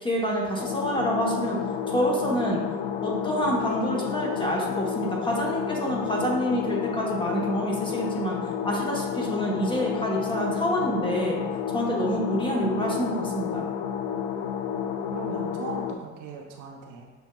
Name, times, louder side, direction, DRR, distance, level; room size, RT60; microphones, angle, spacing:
voice 1, 0.0-1.6 1.9-2.6 3.0-11.4 11.7-13.7, equal, 10° left, -2 dB, 0.9 m, -27 dB
sound 1, 0.6-15.9, left 8 dB, 50° left, 0.5 m, -31 dB
voice 2, 15.1-17.1, right 5 dB, 45° right, 1 dB, 0.7 m, -38 dB
6.8 x 2.7 x 2.2 m, 1.3 s
hypercardioid pair, 75°, 41 cm